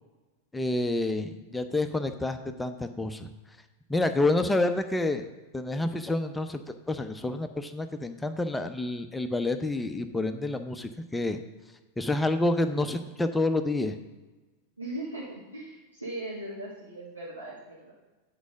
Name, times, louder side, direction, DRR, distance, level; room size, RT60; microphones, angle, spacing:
voice 1, 0.5-3.3 3.9-5.3 5.5-6.6 6.9-11.4 12.0-14.0, left 2 dB, 10° left, 8 dB, 0.6 m, -28 dB
voice 2, 14.8-17.9, right 1 dB, 85° right, -8 dB, 1.9 m, -39 dB
8.3 x 4.7 x 6.2 m, 1.2 s
figure-of-eight pair, 90°, 0 cm